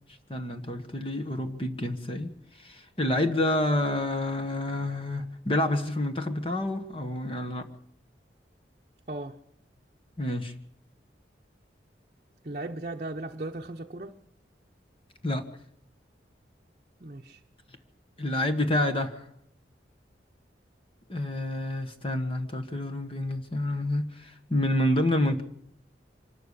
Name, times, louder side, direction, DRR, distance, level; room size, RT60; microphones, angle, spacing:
voice 1, 0.3-7.7 10.2-10.6 15.2-15.5 18.2-19.3 21.1-25.4, left 1 dB, 30° left, 1.5 m, -28 dB
voice 2, 9.1-9.4 12.4-14.1 17.0-17.4, right 2 dB, 40° right, 0.9 m, -37 dB
25.5 x 12.5 x 8.4 m
head